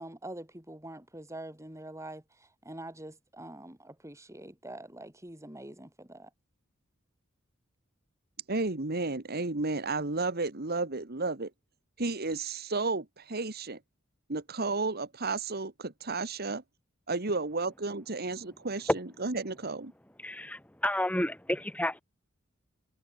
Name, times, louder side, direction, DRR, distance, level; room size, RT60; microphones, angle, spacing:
voice 1, 0.0-6.3, right 1 dB, 15° right, 6.6 m, -45 dB
voice 2, 8.5-11.5 12.0-13.8 14.3-16.6 17.1-18.9 19.2-19.9, right 3 dB, 50° right, 1.8 m, -32 dB
voice 3, 20.2-22.0, left 1 dB, 5° left, 2.1 m, -31 dB
head